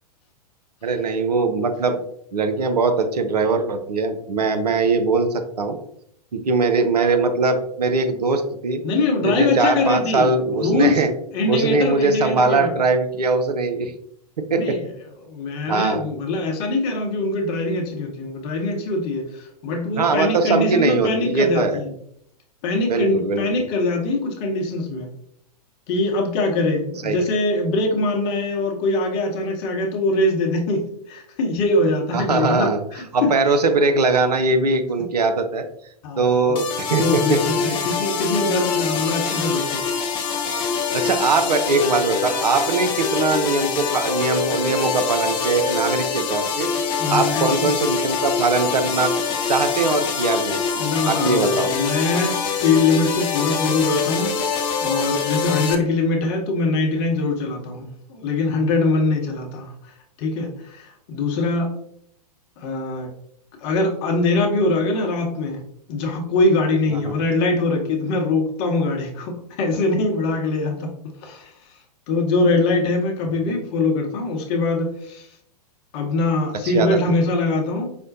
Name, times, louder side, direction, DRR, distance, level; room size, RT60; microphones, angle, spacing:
voice 1, 0.8-2.0 2.3-5.8 6.3-8.8 9.2-11.1 11.5-13.9 14.5-14.8 15.7-16.0 20.0-21.8 22.9-23.7 27.0-27.2 32.1-32.8 33.1-35.6 36.2-37.4 37.7-37.9 40.9-46.7 47.1-49.1 49.5-50.6 51.1-51.7 67.0-67.1 76.6-77.0, right 3 dB, 75° right, 7 dB, 0.5 m, -21 dB
voice 2, 8.8-11.0 11.3-12.7 14.5-14.8 15.3-21.9 22.6-25.1 25.9-33.3 36.0-36.6 37.0-39.8 47.0-47.7 50.7-54.3 54.8-59.7 60.2-61.7 62.6-63.1 63.6-65.6 65.9-70.9 71.2-71.5 72.1-75.3 75.9-78.0, left 2 dB, 40° left, 2 dB, 0.8 m, -22 dB
sound 1, 36.6-55.8, left 5 dB, 25° left, 0.4 m, -24 dB
5.0 x 2.1 x 2.6 m, 0.71 s
figure-of-eight pair, 100°, 21 cm